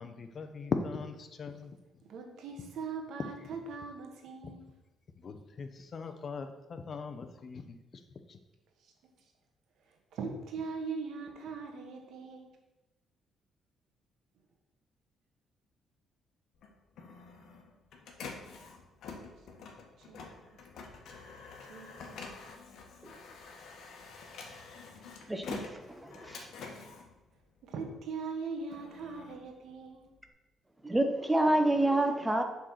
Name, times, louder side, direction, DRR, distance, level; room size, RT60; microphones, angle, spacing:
voice 1, 0.0-1.8 4.4-4.5 5.2-8.0 8.3-8.4, left 4 dB, 45° left, 7 dB, 0.9 m, -39 dB
voice 2, 2.1-4.7 6.1-6.2 8.8-8.9 10.1-12.5 20.0-20.3 21.6-22.3 26.6-26.8 27.6-30.1, right 4 dB, 70° right, 3 dB, 1.5 m, -41 dB
Printer, 16.5-28.0 28.4-30.3, left 4 dB, 70° left, 1.4 m, -47 dB
voice 3, 25.3-26.5 30.8-32.4, right 1 dB, 10° right, 6 dB, 0.8 m, -28 dB
7.2 x 4.0 x 6.4 m, 0.99 s
cardioid pair, 105°, 0 cm